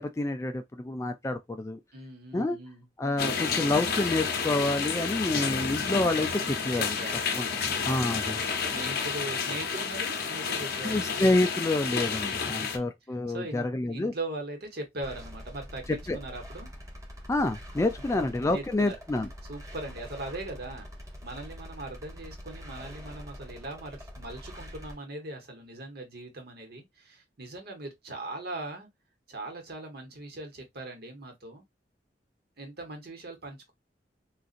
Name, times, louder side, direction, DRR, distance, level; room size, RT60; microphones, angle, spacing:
voice 1, 0.0-1.8 2.3-2.6 3.0-7.0 7.3-7.5 7.8-8.5 10.8-14.1 16.1-16.2 17.3-19.3, left 2 dB, 15° left, 0.3 m, -28 dB
voice 2, 1.9-2.9 6.7-7.2 7.6-11.1 12.4-12.9 13.3-16.7 18.5-18.9 19.5-28.9 29.3-31.6 32.6-33.7, right 2 dB, 60° right, 1.2 m, -40 dB
sound 1, 3.2-12.8, left 5 dB, 60° left, 0.7 m, -30 dB
sound 2, 15.0-25.0, equal, 20° right, 0.9 m, -44 dB
3.9 x 2.4 x 2.5 m
head